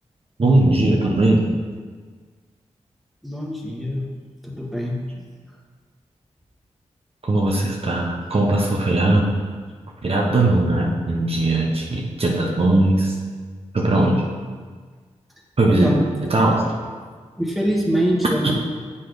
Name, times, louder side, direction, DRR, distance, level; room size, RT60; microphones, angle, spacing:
voice 1, 0.4-1.4 7.2-9.3 10.0-13.2 13.7-14.2 15.6-15.9 16.3-16.6 18.4-18.5, right 2 dB, 50° right, -1 dB, 1.1 m, -19 dB
voice 2, 3.2-4.1 4.4-5.3 15.8-16.1 17.3-18.5, equal, ahead, -2 dB, 1.5 m, -24 dB
7.7 x 4.3 x 5.0 m, 1.6 s
cardioid pair, 50°, 13 cm